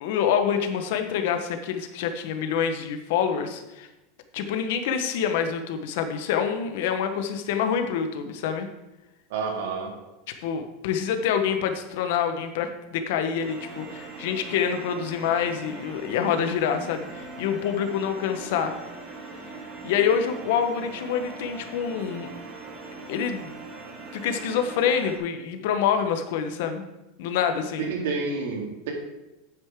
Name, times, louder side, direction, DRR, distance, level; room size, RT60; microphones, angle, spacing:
voice 1, 0.0-3.9 4.3-8.7 10.4-18.7 19.8-22.3 23.1-23.6 24.1-26.9 27.2-27.9, left 7 dB, 55° left, 7 dB, 1.1 m, -26 dB
voice 2, 9.3-10.0 27.8-28.9, right 4 dB, 65° right, 2 dB, 2.2 m, -29 dB
sound 1, 13.4-25.2, right 3 dB, 20° right, 1.3 m, -41 dB
9.0 x 9.0 x 3.7 m, 1.0 s
supercardioid pair, 175°, 0 cm